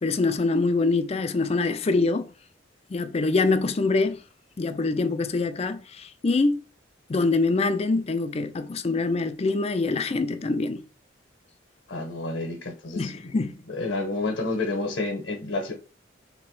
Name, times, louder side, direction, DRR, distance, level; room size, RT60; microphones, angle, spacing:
voice 1, 0.0-2.3 2.9-4.2 4.6-6.6 7.1-10.8 13.0-13.6, left 3 dB, 35° left, 0.4 m, -24 dB
voice 2, 11.9-13.3 13.7-15.7, left 2 dB, 65° left, 0.9 m, -30 dB
3.5 x 3.0 x 4.6 m
head